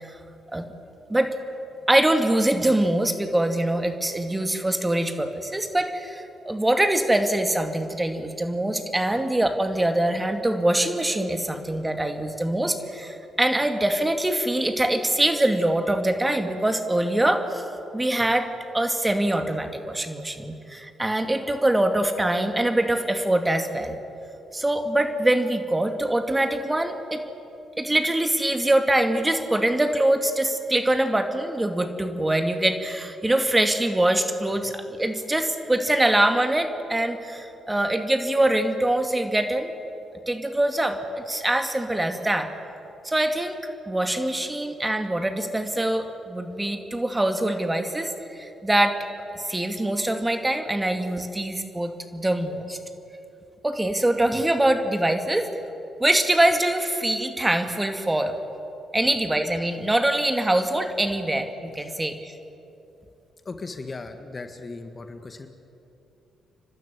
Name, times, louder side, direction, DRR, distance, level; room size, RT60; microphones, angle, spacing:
voice 1, 1.9-17.6 17.9-18.5 18.7-24.0 24.5-27.2 27.8-39.7 40.3-42.5 43.0-43.6 43.9-49.0 49.3-52.8 53.6-55.5 56.0-58.4 58.9-62.3, right 1 dB, 15° right, 6 dB, 2.4 m, -24 dB
voice 2, 63.4-65.5, left 3 dB, 35° left, 7 dB, 1.8 m, -37 dB
30.0 x 12.5 x 9.6 m, 2.9 s
hypercardioid pair, 45°, 0 cm